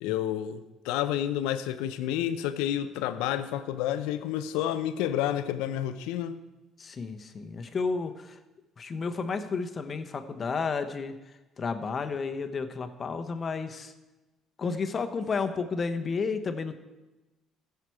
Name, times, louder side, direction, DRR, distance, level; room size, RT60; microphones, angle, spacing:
voice 1, 0.0-6.4, left 11 dB, 85° left, 12 dB, 0.6 m, -30 dB
voice 2, 6.8-8.3 8.8-11.1 11.6-13.9 14.6-16.7, left 4 dB, 40° left, 8 dB, 1.0 m, -31 dB
15.5 x 5.8 x 4.7 m, 1.1 s
supercardioid pair, 70°, 0 cm